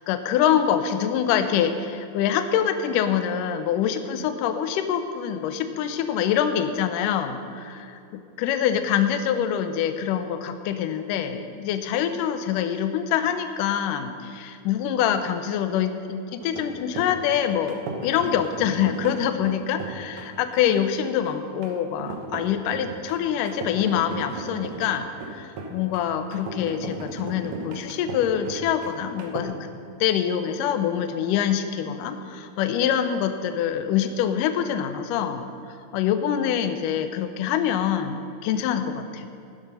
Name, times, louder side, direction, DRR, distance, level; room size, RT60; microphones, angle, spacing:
voice 1, 0.1-7.4 7.7-7.8 8.1-29.7 30.0-35.5 35.9-39.3, left 9 dB, 75° left, 8 dB, 2.1 m, -25 dB
sound 1, 16.4-29.4, right 3 dB, 60° right, 2.0 m, -37 dB
14.5 x 11.5 x 5.5 m, 2.6 s
omnidirectional pair, 4.3 m